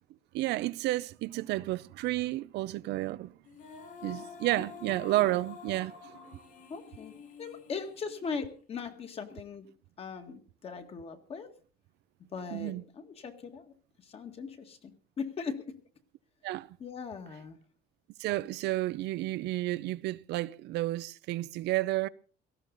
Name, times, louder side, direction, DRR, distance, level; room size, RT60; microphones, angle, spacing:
voice 1, 0.3-3.3 4.0-6.4 12.5-12.8 16.4-16.7 18.2-22.1, right 17 dB, 75° right, 0.6 m, -31 dB
Female singing, 3.5-8.7, left 7 dB, 55° left, 5.9 m, -48 dB
voice 2, 6.7-7.1 7.4-9.7 10.0-11.5 12.3-13.7 14.0-15.8 16.8-17.6, left 5 dB, 35° left, 2.0 m, -39 dB
18.0 x 14.5 x 4.0 m
cardioid pair, 165°, 17 cm